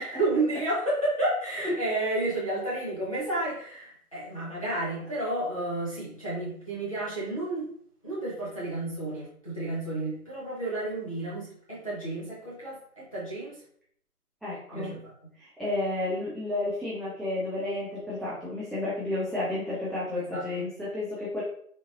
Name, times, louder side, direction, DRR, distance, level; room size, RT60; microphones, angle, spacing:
voice 1, 0.0-7.7 8.0-13.6 14.7-15.0 20.1-20.4, right 2 dB, 20° left, -9 dB, 0.8 m, -31 dB
voice 2, 14.4-14.9 15.4-21.4, left 2 dB, ahead, -9 dB, 0.4 m, -31 dB
3.7 x 2.7 x 2.5 m, 0.63 s
hypercardioid pair, 170°, 46 cm